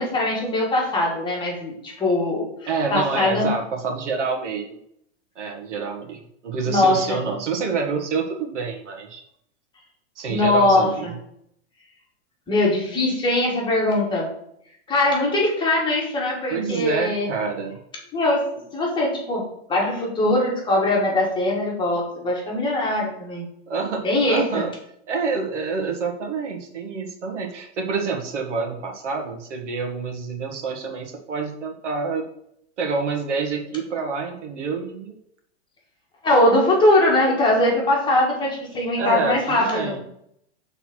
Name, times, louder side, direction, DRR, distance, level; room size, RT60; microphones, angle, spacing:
voice 1, 0.0-2.5 2.9-3.5 6.6-7.2 10.3-11.1 12.5-14.3 14.9-17.3 18.1-18.4 18.7-19.4 19.7-23.5 24.0-24.6 36.2-40.0, left 1 dB, 15° left, -2 dB, 1.8 m, -21 dB
voice 2, 2.7-4.8 5.4-9.2 10.2-11.1 16.5-17.8 23.7-24.0 24.3-24.7 25.1-32.3 32.8-35.2 39.0-40.0, right 4 dB, 85° right, 3 dB, 1.7 m, -27 dB
6.1 x 4.0 x 6.2 m, 0.73 s
supercardioid pair, 150°, 35 cm